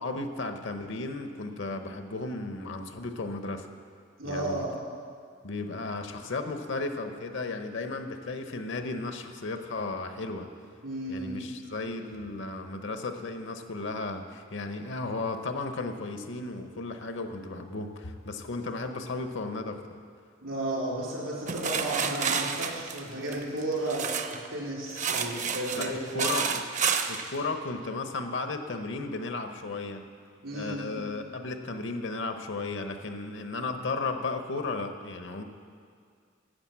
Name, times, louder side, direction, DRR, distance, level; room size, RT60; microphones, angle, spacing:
voice 1, 0.0-3.7 4.2-4.6 5.4-10.5 11.1-19.8 25.7-26.6 27.1-30.1 30.5-35.4, left 3 dB, 65° left, 7 dB, 0.9 m, -34 dB
voice 2, 4.2-4.7 10.8-11.4 20.4-24.1 24.5-26.3 30.4-31.0, right 1 dB, 85° right, -5 dB, 3.9 m, -33 dB
sound 1, 21.5-24.5 24.9-27.3, right 6 dB, 40° right, 0.6 m, -30 dB
11.5 x 7.9 x 7.4 m, 2.2 s
head